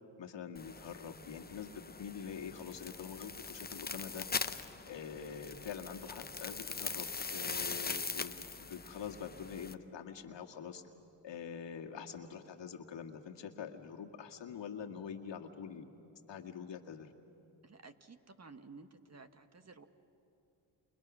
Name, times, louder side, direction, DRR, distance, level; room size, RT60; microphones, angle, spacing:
voice 1, 0.2-4.3 4.9-10.8 11.2-15.8 16.3-17.1, left 7 dB, 60° left, 3 dB, 1.9 m, -45 dB
sound 1, 0.5-9.7, left 4 dB, 20° left, 0.9 m, -42 dB
voice 2, 17.6-19.9, right 4 dB, 30° right, 9 dB, 1.5 m, -54 dB
29.5 x 28.5 x 6.1 m, 2.7 s
supercardioid pair, 65°, 48 cm